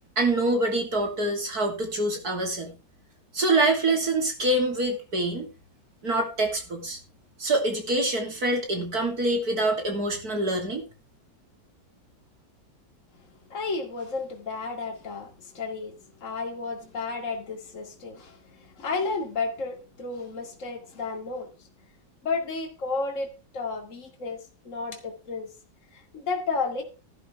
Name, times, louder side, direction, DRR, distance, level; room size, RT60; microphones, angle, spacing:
voice 1, 0.2-2.7 3.3-5.5 6.0-7.0 7.4-10.8, right 2 dB, 50° right, 3 dB, 3.5 m, -25 dB
voice 2, 13.5-21.7 22.2-23.3 23.5-25.5 25.9-26.8, left 4 dB, 40° left, 3 dB, 2.5 m, -32 dB
14.5 x 11.0 x 3.5 m, 0.31 s
omnidirectional pair, 2.1 m